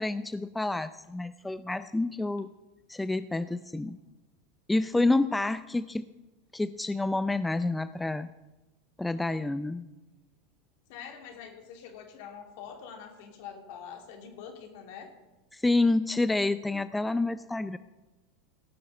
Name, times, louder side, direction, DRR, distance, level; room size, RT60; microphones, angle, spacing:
voice 1, 0.0-2.5 2.9-4.0 4.7-6.0 6.5-8.3 9.0-9.9 15.5-17.8, left 2 dB, 10° left, 13 dB, 0.5 m, -28 dB
voice 2, 10.9-15.1, left 7 dB, 65° left, 3 dB, 2.8 m, -45 dB
17.5 x 6.9 x 6.5 m, 1.1 s
hypercardioid pair, 90°, 0 cm